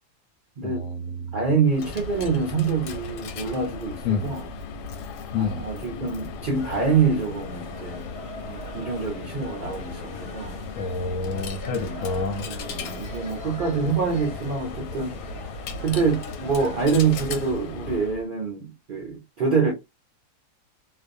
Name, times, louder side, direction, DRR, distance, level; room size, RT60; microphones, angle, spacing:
voice 1, 0.6-1.4 4.0-4.3 5.3-5.7 10.7-12.5 13.8-14.0, left 4 dB, 65° left, 0.8 m, -28 dB
voice 2, 1.3-4.5 5.3-8.1 8.4-10.6 11.7-12.1 12.4-15.1 15.8-19.7, right 5 dB, 55° right, 0.5 m, -26 dB
Coin (dropping), 1.6-18.3, left 4 dB, 90° left, 1.2 m, -36 dB
sound 1, 6.5-17.5, left 2 dB, 40° left, 0.5 m, -42 dB
2.5 x 2.1 x 2.5 m
omnidirectional pair, 1.7 m